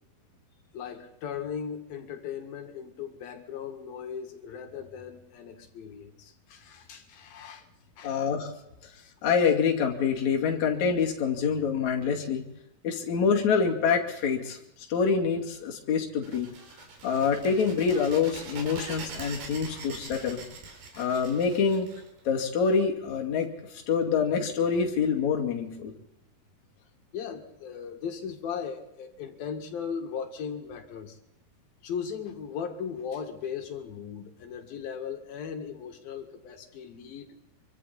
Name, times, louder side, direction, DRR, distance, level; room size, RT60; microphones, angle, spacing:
voice 1, 0.7-7.7 8.0-8.2 8.9-9.1 19.7-19.9 20.9-21.1 27.1-31.2 31.8-37.3, left 7 dB, 70° left, 6 dB, 3.6 m, -38 dB
voice 2, 8.0-8.5 9.2-12.4 12.8-14.6 14.9-16.5 17.0-20.4 21.0-21.9 22.3-23.5 23.9-25.9, left 6 dB, 50° left, 1 dB, 3.5 m, -26 dB
sound 1, 16.2-22.7, right 4 dB, 85° right, 5.3 m, -43 dB
26.0 x 24.0 x 4.3 m, 0.89 s
omnidirectional pair, 4.5 m